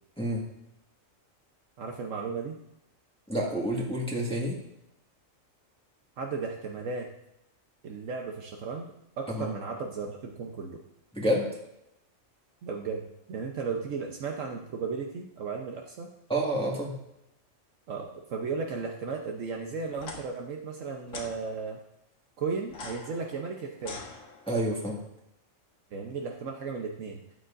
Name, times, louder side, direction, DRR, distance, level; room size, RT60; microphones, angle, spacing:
voice 1, 1.8-2.6 6.2-7.1 7.8-10.8 12.6-13.0 13.3-16.1 17.9-21.8 22.4-23.9 25.9-27.2, right 5 dB, 75° right, 1 dB, 1.2 m, -35 dB
voice 2, 3.3-4.6 9.3-9.5 11.1-11.5 16.3-16.9 24.5-25.0, right 1 dB, 5° left, -3 dB, 1.7 m, -28 dB
sound 1, 19.9-20.2 21.1-21.3 22.7-24.7, left 3 dB, 90° left, 1.7 m, -43 dB
13.0 x 9.4 x 2.6 m, 0.83 s
omnidirectional pair, 1.3 m